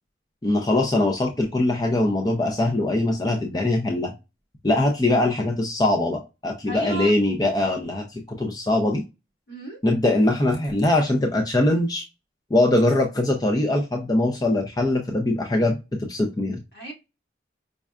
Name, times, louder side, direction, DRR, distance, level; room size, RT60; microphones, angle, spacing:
voice 1, 0.4-4.1 4.6-9.0 9.8-12.0 12.5-16.6, left 1 dB, 20° left, 0.5 m, -22 dB
voice 2, 6.7-7.1 9.5-9.8 16.7-16.9, right 3 dB, 70° left, 1.9 m, -34 dB
5.3 x 2.2 x 2.3 m
head